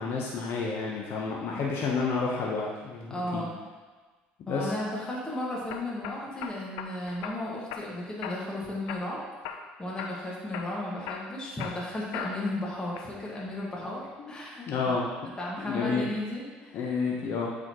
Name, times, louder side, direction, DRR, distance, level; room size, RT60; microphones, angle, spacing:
voice 1, 0.0-3.4 4.5-4.7 14.2-14.3 14.7-15.0 15.6-16.0 16.7-17.5, left 4 dB, 60° left, -2 dB, 0.8 m, -30 dB
voice 2, 3.1-3.5 4.5-9.5 9.8-14.7 15.4-16.8, left 1 dB, 20° left, -5 dB, 1.5 m, -34 dB
sound 1, 4.8-5.2 5.7-6.9 7.2-7.9 8.2-8.6 8.9-9.7 10.0-10.2 10.5-12.6 13.0-13.5, left 7 dB, 80° left, 0.5 m, -39 dB
7.8 x 4.1 x 2.9 m, 1.4 s
supercardioid pair, 80°, 4 cm